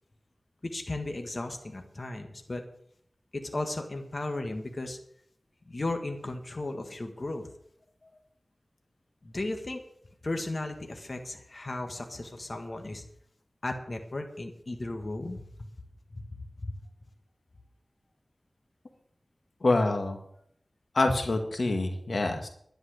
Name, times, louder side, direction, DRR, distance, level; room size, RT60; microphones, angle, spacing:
voice 1, 0.6-2.6 3.3-5.0 5.7-7.5 9.2-9.8 10.2-13.0 13.6-15.7 16.1-16.7, left 2 dB, 50° left, 4 dB, 1.6 m, -35 dB
voice 2, 19.6-20.2 20.9-22.5, left 2 dB, 70° left, 4 dB, 1.8 m, -26 dB
11.0 x 11.0 x 6.5 m, 0.68 s
wide cardioid pair, 55°, 0 cm